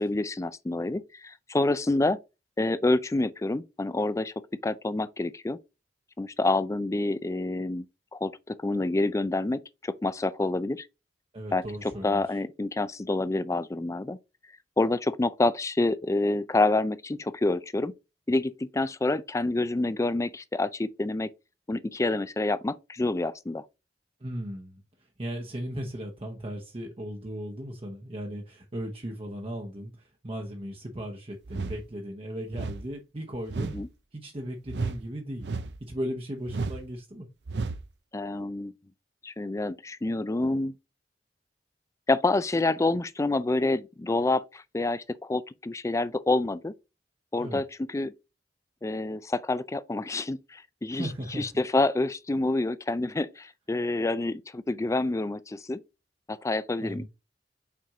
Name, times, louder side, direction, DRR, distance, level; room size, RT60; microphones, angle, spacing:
voice 1, 0.0-2.2 2.6-4.3 4.6-5.6 6.2-7.8 8.1-10.9 11.5-11.6 12.0-14.2 14.8-17.9 18.3-21.3 21.7-23.6 33.7-33.9 38.1-38.7 39.2-40.7 42.1-46.7 47.3-48.1 48.8-51.1 51.4-55.8 56.3-57.0, left 2 dB, 15° left, 0.4 m, -27 dB
voice 2, 11.3-12.4 24.2-24.8 25.2-33.8 34.1-35.5 35.8-37.3 47.4-47.6 50.9-51.5 56.8-57.0, equal, 30° right, 0.9 m, -37 dB
sound 1, 31.5-31.9 32.5-32.9 33.5-33.8 34.7-35.0 35.4-35.8 36.5-36.8 37.5-37.8, right 4 dB, 70° right, 0.6 m, -33 dB
6.0 x 4.3 x 3.6 m
head